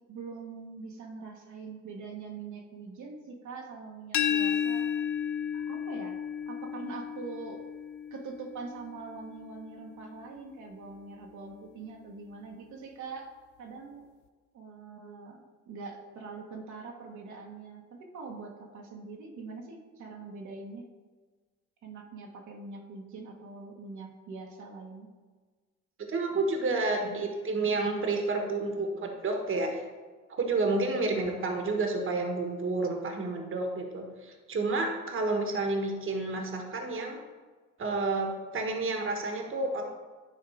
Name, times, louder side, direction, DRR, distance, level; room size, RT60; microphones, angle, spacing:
voice 1, 0.1-4.9 5.5-6.2 6.5-7.6 8.1-13.3 13.6-14.0 14.5-15.4 15.7-20.8 21.8-25.1, right 4 dB, 75° right, 0 dB, 1.3 m, -43 dB
sound 1, 4.1-9.9, left 8 dB, 80° left, 0.6 m, -33 dB
voice 2, 26.1-29.8 30.3-37.2 37.8-39.9, right 3 dB, 45° right, 3 dB, 1.3 m, -30 dB
10.5 x 3.6 x 4.9 m, 1.4 s
cardioid pair, 90°, 30 cm